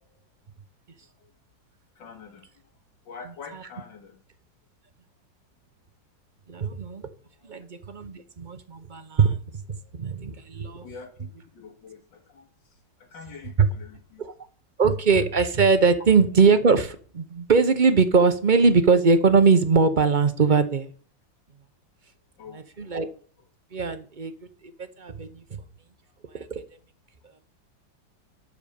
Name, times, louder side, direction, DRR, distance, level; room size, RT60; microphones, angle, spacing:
voice 1, 2.0-2.5 3.1-4.2 7.4-7.7 9.8-10.0 10.8-12.5 13.0-14.2 22.4-23.0, left 5 dB, 75° left, 3 dB, 2.6 m, -45 dB
voice 2, 6.5-7.1 7.4-9.4 10.0-10.8 13.6-13.7 14.2-14.3 14.8-20.9 22.5-23.1 23.7-24.3 24.8-25.4 26.3-26.6, right 5 dB, 45° right, 11 dB, 0.6 m, -21 dB
12.0 x 5.0 x 6.7 m, 0.42 s
omnidirectional pair, 2.0 m